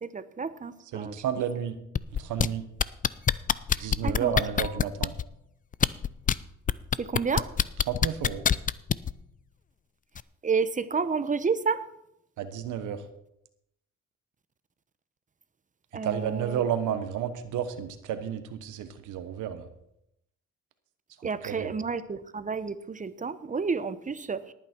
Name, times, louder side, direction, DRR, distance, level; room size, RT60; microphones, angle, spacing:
voice 1, 0.0-1.1 3.7-4.3 4.6-4.7 7.0-7.5 10.4-11.8 15.9-16.6 21.2-24.5, right 5 dB, 25° right, 13 dB, 0.9 m, -30 dB
voice 2, 0.9-1.8 2.2-2.6 3.8-5.1 7.9-8.4 12.4-13.0 16.0-19.7 21.4-21.7, right 9 dB, 85° right, 9 dB, 1.2 m, -31 dB
sound 1, 2.0-2.5 2.8-5.2 5.7-6.3 6.7-9.1 10.2-10.3, left 8 dB, 30° left, 0.4 m, -24 dB
18.5 x 9.1 x 4.5 m, 0.80 s
cardioid pair, 90°, 30 cm